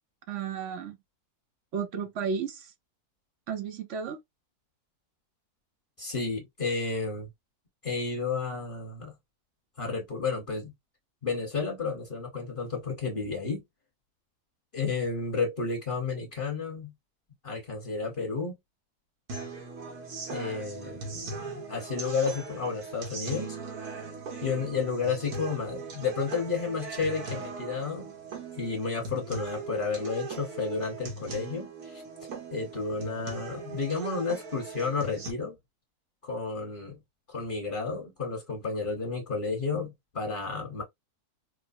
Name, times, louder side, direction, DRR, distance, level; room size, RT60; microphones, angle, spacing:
voice 1, 0.3-1.0 1.7-2.7 3.5-4.2, right 6 dB, 60° right, 0.9 m, -33 dB
voice 2, 6.0-7.3 7.8-9.1 9.8-10.7 11.2-13.6 14.7-16.9 17.4-18.6 20.3-23.6 24.4-28.1 28.5-32.0 32.5-35.6 36.2-37.0 37.3-40.8, left 4 dB, 35° left, 1.3 m, -32 dB
sound 1, 19.3-35.3, right 4 dB, 80° right, 1.6 m, -40 dB
4.7 x 2.0 x 2.6 m
omnidirectional pair, 1.6 m